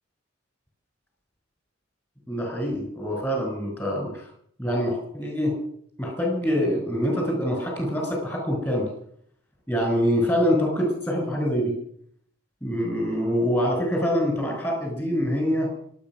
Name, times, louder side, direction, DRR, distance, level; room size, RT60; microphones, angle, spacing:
voice 1, 2.3-4.3 4.6-5.5 6.0-8.9 9.7-11.7 12.6-15.7, equal, 10° left, 1 dB, 6.4 m, -25 dB
25.5 x 8.9 x 6.2 m, 0.64 s
head